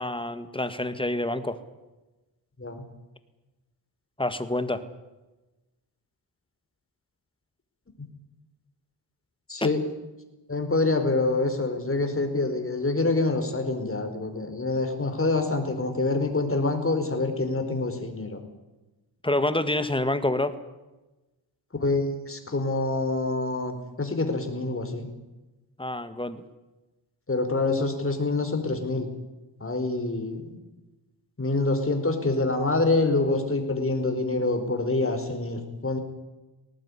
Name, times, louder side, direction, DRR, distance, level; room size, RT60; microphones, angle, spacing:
voice 1, 0.0-1.6 4.2-4.8 9.6-9.7 19.2-20.5 25.8-26.4, left 1 dB, 10° left, 11 dB, 1.9 m, -27 dB
voice 2, 9.5-9.8 10.5-18.4 21.7-25.1 27.3-29.1 29.6-30.6 31.4-36.0, left 2 dB, 30° left, 6 dB, 4.7 m, -26 dB
19.5 x 19.0 x 10.0 m, 1.1 s
wide cardioid pair, 95°, 44 cm